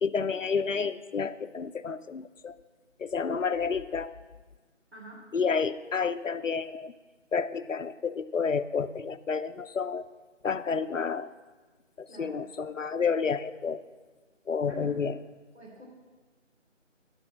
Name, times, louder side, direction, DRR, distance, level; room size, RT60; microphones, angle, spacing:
voice 1, 0.0-2.5 3.0-4.1 5.3-6.9 7.3-10.1 10.4-11.3 12.0-13.8 14.5-15.1, left 5 dB, 85° left, 12 dB, 0.7 m, -30 dB
voice 2, 4.9-5.2 12.1-12.4 14.7-14.9 15.5-15.8, left 1 dB, 60° right, -5 dB, 3.3 m, -46 dB
12.5 x 5.5 x 7.4 m, 1.3 s
figure-of-eight pair, 175°, 37 cm